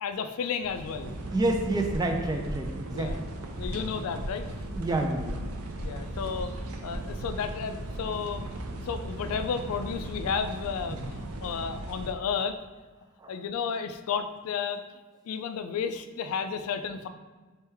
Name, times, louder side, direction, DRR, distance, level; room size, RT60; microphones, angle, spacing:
voice 1, 0.0-1.1 2.9-3.2 3.6-4.5 5.8-6.5 6.8-8.5 8.7-12.6 13.3-14.8 15.3-17.1, left 6 dB, 80° left, 9 dB, 0.3 m, -32 dB
sound 1, 0.6-12.1, right 1 dB, 85° right, 0.5 m, -38 dB
voice 2, 1.3-3.3 3.6-4.0 4.7-5.4 10.9-11.0 13.2-13.3, right 2 dB, 20° right, 3 dB, 0.4 m, -29 dB
sound 2, 2.4-2.7 3.0-3.3 3.6-3.9 4.2-4.4 4.7-5.5 5.8-6.1 6.3-6.6 6.9-7.2, equal, 45° right, 1.2 m, -39 dB
4.3 x 3.2 x 3.4 m, 1.3 s
head